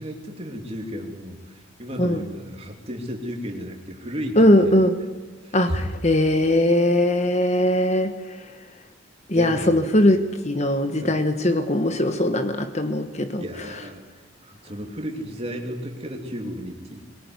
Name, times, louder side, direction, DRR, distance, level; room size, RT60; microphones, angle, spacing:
voice 1, 0.0-4.7 5.4-5.8 9.3-10.1 11.0-11.2 13.3-14.0 14.4-17.0, equal, 30° right, 2 dB, 3.0 m, -33 dB
voice 2, 4.4-4.9 5.5-8.1 9.3-13.4, left 1 dB, 30° left, 8 dB, 1.3 m, -20 dB
22.0 x 20.5 x 9.6 m, 1.3 s
head